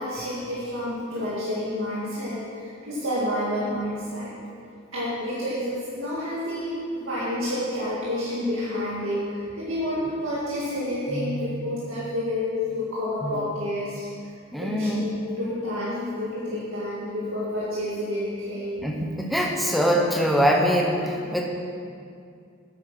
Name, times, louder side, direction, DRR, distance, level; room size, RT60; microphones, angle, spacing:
voice 1, 0.0-4.3 4.9-14.0 14.6-18.9, left 1 dB, 80° right, -8 dB, 2.2 m, -29 dB
voice 2, 11.1-11.4 13.2-13.4 14.5-15.1 18.8-21.5, equal, ahead, 0 dB, 1.0 m, -23 dB
9.1 x 8.9 x 6.2 m, 2.3 s
head